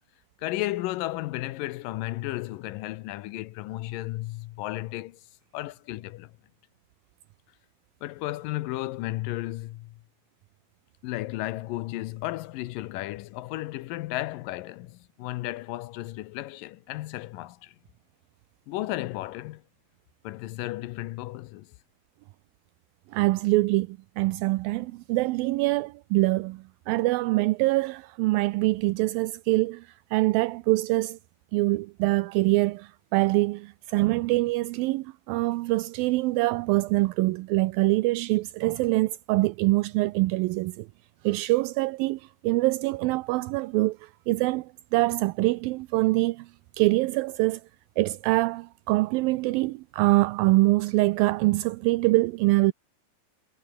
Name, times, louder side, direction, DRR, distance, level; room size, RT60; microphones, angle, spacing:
voice 1, 0.4-5.2 5.5-6.3 8.0-10.0 11.0-17.7 18.7-19.6 20.2-21.7, left 17 dB, 80° left, 2.3 m, -34 dB
voice 2, 23.1-31.2 31.5-40.9 41.2-46.5 46.8-47.6 48.0-52.7, right 20 dB, 80° right, 2.4 m, -24 dB
omnidirectional pair, 4.2 m